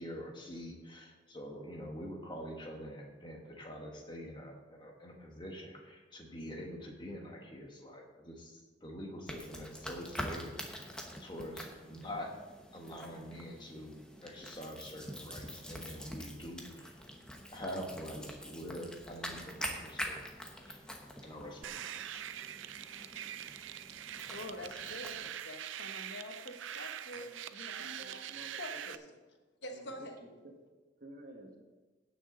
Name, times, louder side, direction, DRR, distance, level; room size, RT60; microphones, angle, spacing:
voice 1, 0.0-10.9 11.2-12.3 12.7-16.9 17.5-20.2 20.6-20.8 21.2-22.2 22.8-23.1, equal, 25° left, 1 dB, 1.4 m, -45 dB
sound 1, 9.3-25.3, equal, 5° left, 1.0 m, -45 dB
sound 2, 21.6-29.0, right 10 dB, 85° right, 0.5 m, -43 dB
voice 2, 24.3-28.3 28.6-30.2, left 1 dB, 65° left, 4 dB, 1.3 m, -47 dB
voice 3, 27.8-28.8 29.7-30.5 31.0-31.6, equal, 50° right, 1 dB, 1.7 m, -52 dB
16.5 x 6.4 x 3.9 m, 1.2 s
head